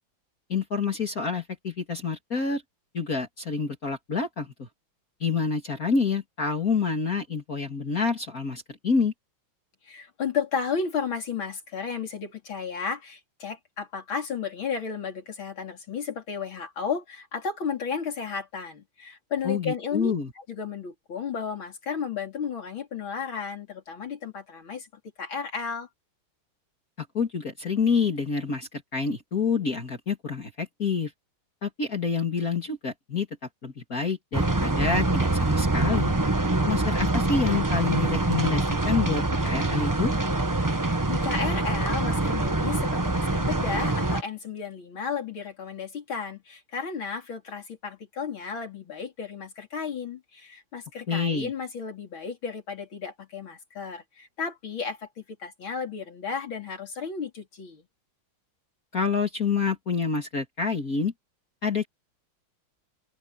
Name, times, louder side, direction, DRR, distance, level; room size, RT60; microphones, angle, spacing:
voice 1, 0.5-2.6 2.9-4.7 5.2-9.1 19.4-20.3 27.0-31.1 31.6-33.3 33.6-36.1 36.7-40.1 51.1-51.5 58.9-61.1 61.6-61.9, left 5 dB, 40° left, 3.0 m, -27 dB
voice 2, 9.8-24.9 25.2-25.9 40.8-57.8, left 6 dB, 70° left, 4.3 m, -33 dB
sound 1, 34.3-44.2, right 2 dB, 15° right, 0.7 m, -25 dB
open air
omnidirectional pair, 2.3 m